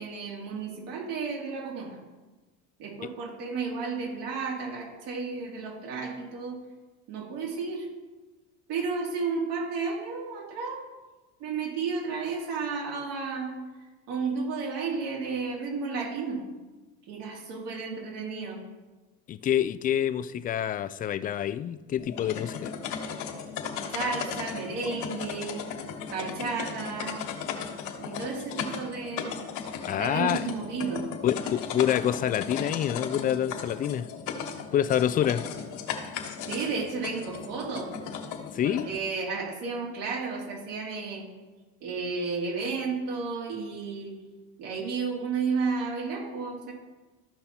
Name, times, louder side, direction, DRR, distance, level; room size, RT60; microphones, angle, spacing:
voice 1, 0.0-2.0 2.8-6.6 7.1-7.9 8.7-10.8 11.4-13.5 14.1-16.4 17.1-18.6 23.9-25.6 26.1-27.2 28.0-29.4 30.0-31.0 36.5-37.9 38.6-41.2 41.8-44.2 44.6-46.7, right 4 dB, 75° right, 3.5 m, -32 dB
voice 2, 19.3-22.8 29.9-30.5 31.2-34.1 34.7-35.4 38.5-38.9, left 10 dB, 25° left, 0.4 m, -27 dB
sound 1, 22.0-39.0, left 6 dB, 65° left, 1.5 m, -36 dB
13.5 x 5.5 x 4.4 m
supercardioid pair, 115°, 33 cm